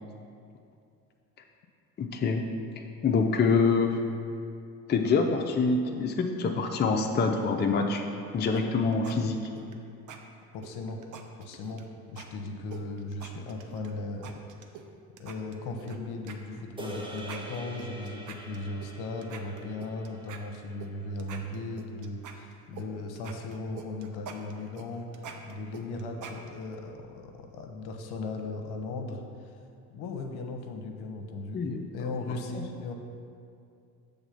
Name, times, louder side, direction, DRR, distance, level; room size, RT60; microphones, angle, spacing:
voice 1, 2.0-2.4 3.0-4.0 4.9-8.0 8.3-9.4 31.5-31.8 32.5-32.6, left 4 dB, 25° left, 3 dB, 0.5 m, -25 dB
sound 1, 8.5-9.1 9.4-9.7 10.1-10.2 10.6-11.8 12.2-12.3 12.7-13.9 14.2-14.9 15.2-16.0 16.3-16.4 16.8-16.9 17.2-18.9 19.2-20.9 21.2-22.9 23.2-26.8, right 7 dB, 45° right, 0.7 m, -45 dB
voice 2, 10.5-11.0 11.4-14.4 15.2-25.1 25.4-29.5 29.9-31.6 31.9-32.9, left 2 dB, 60° left, 4 dB, 0.9 m, -37 dB
sound 2, 16.8-21.2, right 1 dB, 10° right, 1.0 m, -44 dB
7.0 x 3.5 x 5.7 m, 2.4 s
hypercardioid pair, 60°, 45 cm